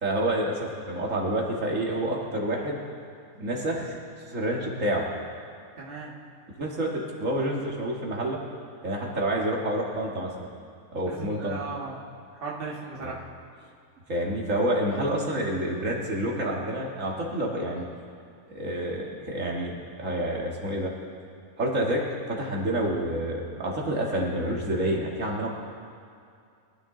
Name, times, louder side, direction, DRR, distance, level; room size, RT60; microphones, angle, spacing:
voice 1, 0.0-2.8 3.4-5.1 6.6-8.4 8.8-10.5 10.9-11.6 13.0-13.1 14.1-17.9 18.5-19.7 20.0-20.9 21.6-25.5, right 1 dB, 60° right, -2 dB, 2.1 m, -28 dB
voice 2, 5.8-6.1 11.1-12.0 12.3-13.3, right 4 dB, 40° right, -4 dB, 1.8 m, -36 dB
23.5 x 12.5 x 3.8 m, 2.3 s
omnidirectional pair, 1.6 m